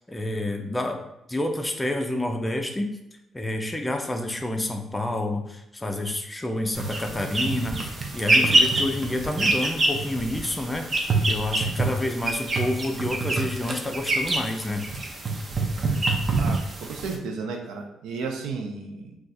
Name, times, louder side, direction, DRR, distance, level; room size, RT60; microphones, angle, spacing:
voice 1, 0.1-1.0 1.3-2.9 3.3-14.8, left 1 dB, 15° left, 3 dB, 0.4 m, -29 dB
sound 1, 6.8-17.2, right 2 dB, 40° right, 0.5 m, -25 dB
voice 2, 16.4-19.2, right 4 dB, 85° right, 3 dB, 0.5 m, -33 dB
2.4 x 2.3 x 4.0 m, 0.86 s
cardioid pair, 90°, 0 cm